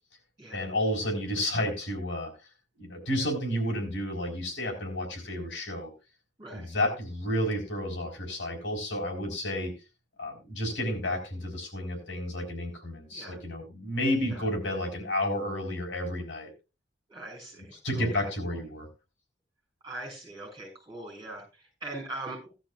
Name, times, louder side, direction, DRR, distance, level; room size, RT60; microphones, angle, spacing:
voice 1, 0.5-2.3 2.8-5.9 6.5-9.7 10.2-16.5 17.8-18.9, left 1 dB, 80° left, 2 dB, 4.0 m, -31 dB
voice 2, 17.1-18.6 19.8-22.5, right 2 dB, 20° right, 1 dB, 6.8 m, -42 dB
16.5 x 12.0 x 2.3 m, 0.28 s
head